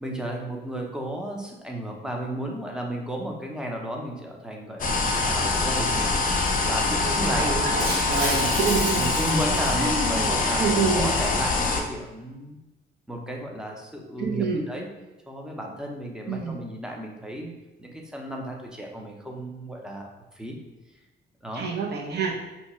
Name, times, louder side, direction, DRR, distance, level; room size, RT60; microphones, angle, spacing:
voice 1, 0.0-7.6 8.3-8.5 9.0-12.6 13.1-14.9 15.3-17.5 17.8-20.0 20.3-20.6 21.4-21.6, right 1 dB, 5° right, 0 dB, 0.6 m, -33 dB
sound 1, 4.8-11.8, left 3 dB, 45° left, 0.6 m, -24 dB
voice 2, 6.9-7.8 8.1-9.1 9.8-11.1 14.2-14.6 16.3-16.6 21.5-22.3, right 5 dB, 55° right, -1 dB, 0.8 m, -27 dB
Shatter, 7.8-10.2, right 1 dB, 80° right, 1.3 m, -32 dB
2.9 x 2.3 x 4.2 m, 1.0 s
cardioid pair, 90°, 20 cm